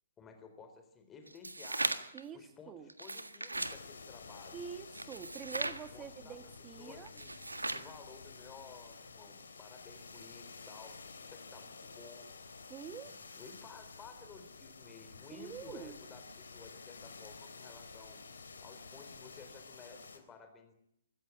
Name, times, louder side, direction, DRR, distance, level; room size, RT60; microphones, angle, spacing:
voice 1, 0.2-1.9 2.3-4.6 5.9-6.4 6.8-7.3 7.7-12.3 13.0-18.2 18.6-20.7, left 5 dB, 15° left, 6 dB, 4.2 m, -55 dB
sound 1, 1.3-2.2 2.9-3.8 4.9-5.8 7.1-7.9, right 2 dB, 80° right, 1.7 m, -37 dB
voice 2, 2.1-2.9 4.5-7.1 12.7-13.1 15.3-16.0, right 8 dB, 15° right, 12 dB, 1.4 m, -46 dB
sound 2, 3.5-20.2, left 4 dB, 65° left, 3.5 m, -51 dB
25.0 x 14.5 x 9.8 m, 0.77 s
figure-of-eight pair, 125°, 0 cm